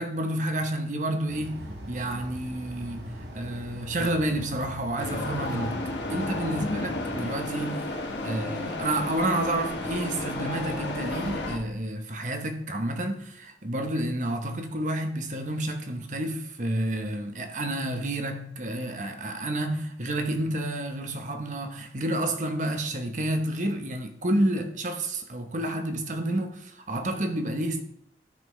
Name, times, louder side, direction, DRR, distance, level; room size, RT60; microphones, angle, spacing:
voice 1, 0.0-7.9 8.2-27.8, right 1 dB, 45° right, 0.9 m, -30 dB
sound 1, 1.3-7.2, equal, 75° right, 1.5 m, -41 dB
sound 2, 5.0-11.6, left 2 dB, 80° left, 1.2 m, -32 dB
13.0 x 5.7 x 3.1 m
head